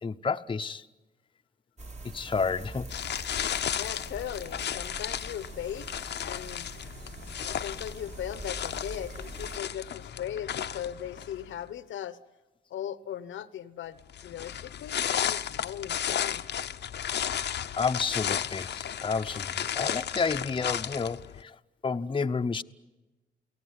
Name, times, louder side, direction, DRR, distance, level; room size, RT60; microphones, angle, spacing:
voice 1, 0.0-0.9 2.0-2.9 17.8-21.6 21.8-22.6, left 5 dB, 25° left, 0.8 m, -30 dB
sound 1, 1.8-9.6, right 2 dB, 35° right, 2.3 m, -44 dB
sound 2, 2.9-11.5 14.1-21.4, left 9 dB, 65° left, 0.8 m, -34 dB
voice 2, 3.8-5.9 6.2-6.7 7.4-12.2 12.7-16.5, left 10 dB, 85° left, 1.1 m, -38 dB
29.0 x 18.5 x 9.7 m
cardioid pair, 95°, 19 cm